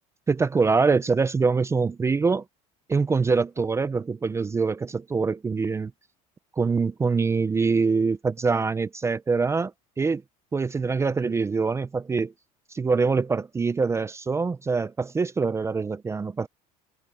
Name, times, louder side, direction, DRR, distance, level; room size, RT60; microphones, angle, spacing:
voice 1, 0.3-2.4 2.9-5.9 6.6-9.7 10.0-10.2 10.5-12.3 12.7-16.5, right 4 dB, 15° right, 0.5 m, -24 dB
cardioid pair, 130°, 17 cm